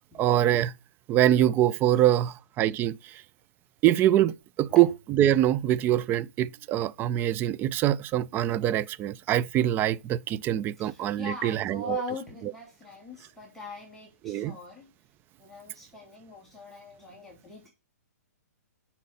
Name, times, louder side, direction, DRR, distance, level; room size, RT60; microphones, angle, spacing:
voice 1, 0.2-0.7 1.1-3.2 3.8-12.0 14.2-14.6, right 12 dB, 20° right, 0.4 m, -24 dB
voice 2, 10.8-14.9 15.4-17.7, left 3 dB, 5° left, 2.3 m, -41 dB
10.0 x 5.8 x 5.6 m
hypercardioid pair, 130°, 9 cm